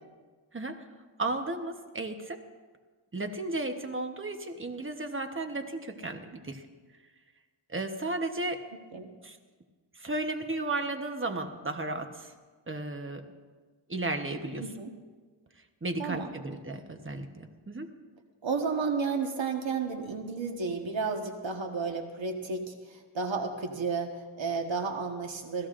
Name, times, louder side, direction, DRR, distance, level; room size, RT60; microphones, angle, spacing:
voice 1, 1.2-2.4 3.1-6.6 7.7-8.6 9.2-9.4 9.9-12.3 12.7-13.3 13.9-14.6 15.8-17.9, right 2 dB, 25° right, 6 dB, 1.1 m, -34 dB
voice 2, 14.6-14.9 16.0-16.3 18.4-25.7, right 4 dB, 65° right, 3 dB, 1.5 m, -32 dB
27.0 x 16.0 x 2.6 m, 1.4 s
wide cardioid pair, 115°, 49 cm